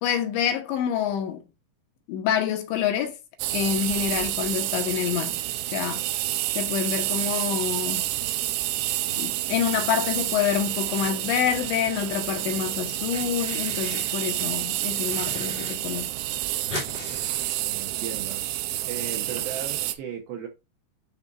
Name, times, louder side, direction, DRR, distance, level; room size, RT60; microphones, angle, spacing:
voice 1, 0.0-1.4 2.1-3.2 3.5-5.4 5.7-6.0 6.5-8.1 9.2-16.1, left 9 dB, 80° left, 3.1 m, -27 dB
sound 1, 3.4-19.9, right 15 dB, 90° right, 3.0 m, -29 dB
sound 2, 12.1-12.6 12.9-14.2 14.6-15.8 16.0-16.1 16.3-18.2, left 2 dB, 45° left, 0.6 m, -39 dB
voice 2, 17.6-18.4 18.8-20.5, right 8 dB, 75° right, 2.4 m, -36 dB
10.5 x 4.4 x 2.5 m
omnidirectional pair, 5.4 m